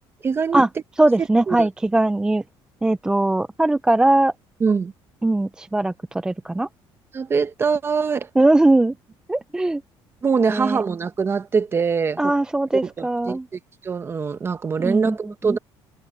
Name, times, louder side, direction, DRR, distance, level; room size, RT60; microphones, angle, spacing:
voice 1, 0.2-0.6 1.2-1.7 4.6-4.9 7.1-8.3 10.2-12.3 12.8-15.6, right 5 dB, 25° right, 1.3 m, -23 dB
voice 2, 1.0-2.4 2.8-4.3 5.2-6.7 8.4-8.9 9.3-9.8 10.5-10.8 12.2-13.5 14.8-15.2 15.5-15.6, right 2 dB, 10° right, 0.5 m, -20 dB
cardioid pair, 135°, 9 cm